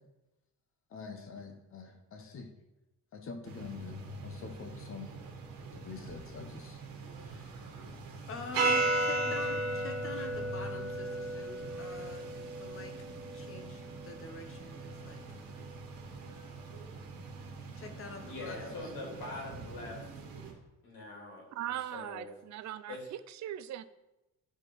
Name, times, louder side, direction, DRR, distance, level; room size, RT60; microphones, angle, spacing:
voice 1, 0.9-2.5 3.1-5.2 5.7-6.8 7.2-7.6 8.3-12.3 12.6-12.9 13.3-15.2 17.8-18.9, left 4 dB, 40° left, 6 dB, 1.0 m, -46 dB
sound 1, 3.5-20.5, right 2 dB, 75° right, 1.9 m, -37 dB
voice 2, 18.2-20.0 20.8-22.3 22.9-23.1, left 2 dB, 85° left, -1 dB, 3.4 m, -43 dB
voice 3, 21.5-23.8, right 11 dB, 55° right, 14 dB, 0.5 m, -40 dB
11.5 x 5.1 x 4.8 m, 0.99 s
cardioid pair, 180°, 35 cm